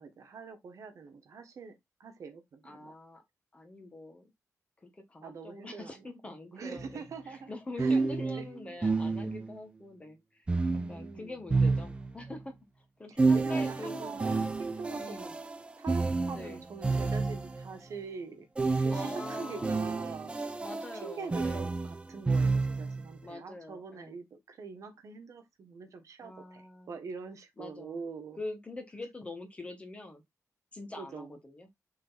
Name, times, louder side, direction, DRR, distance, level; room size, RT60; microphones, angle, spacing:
voice 1, 0.0-2.9 5.2-6.0 6.5-7.5 7.8-8.5 9.3-9.4 10.7-11.4 13.1-15.3 15.8-18.5 18.8-20.3 21.0-28.4 31.0-31.3, right 5 dB, 60° right, 1.5 m, -44 dB
voice 2, 2.6-3.2 3.5-4.3 4.8-14.4 15.0-15.4 16.3-16.6 18.9-19.8 20.6-21.8 23.2-24.2 26.2-27.0 27.6-28.0 28.4-30.2 30.7-31.7, left 2 dB, 20° left, 1.5 m, -44 dB
sound 1, 6.8-6.9 7.8-9.6 10.5-12.4 13.2-17.7 18.6-23.1, right 3 dB, 20° right, 0.7 m, -30 dB
6.7 x 3.9 x 4.1 m
wide cardioid pair, 165°, 6 cm